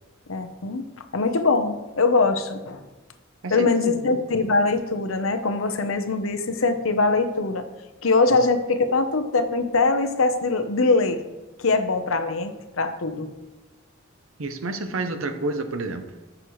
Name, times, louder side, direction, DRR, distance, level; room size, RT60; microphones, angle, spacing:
voice 1, 0.3-0.9 1.1-2.8 3.5-7.7 8.0-11.2 11.6-13.3, left 3 dB, 80° left, 7 dB, 0.9 m, -22 dB
voice 2, 3.4-4.2 8.3-8.4 14.4-16.1, right 2 dB, 80° right, 8 dB, 0.8 m, -30 dB
14.0 x 6.3 x 3.2 m, 1.1 s
head